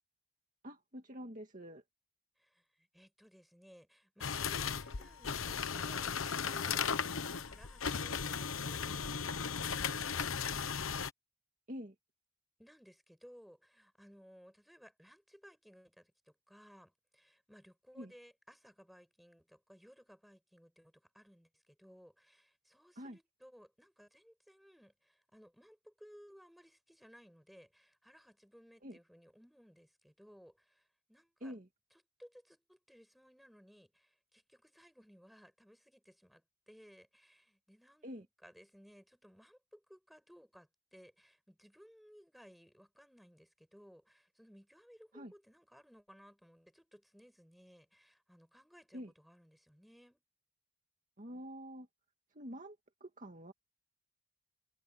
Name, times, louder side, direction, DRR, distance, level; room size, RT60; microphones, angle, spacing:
voice 1, 0.6-1.8 11.7-11.9 18.0-18.1 23.0-23.2 28.8-29.0 31.4-31.7 38.0-38.3 45.1-45.3 48.9-49.1 51.2-51.9 52.3-52.8 53.0-53.5, equal, 40° right, 2.2 m, -46 dB
voice 2, 2.4-10.8 12.6-31.5 31.9-50.2, equal, ahead, 8.0 m, -60 dB
sound 1, 4.2-11.1, left 6 dB, 90° left, 1.0 m, -36 dB
head